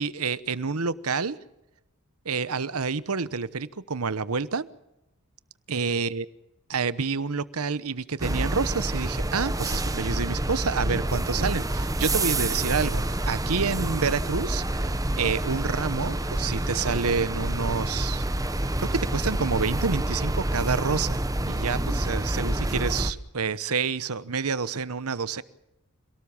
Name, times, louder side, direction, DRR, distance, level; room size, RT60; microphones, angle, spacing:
voice 1, 0.0-1.4 2.2-4.7 5.7-6.3 6.7-14.9 15.2-18.3 18.8-25.4, right 5 dB, 90° right, 17 dB, 1.0 m, -28 dB
sound 1, 8.2-23.1, right 1 dB, 15° right, 1.0 m, -28 dB
26.5 x 18.0 x 7.2 m, 0.92 s
head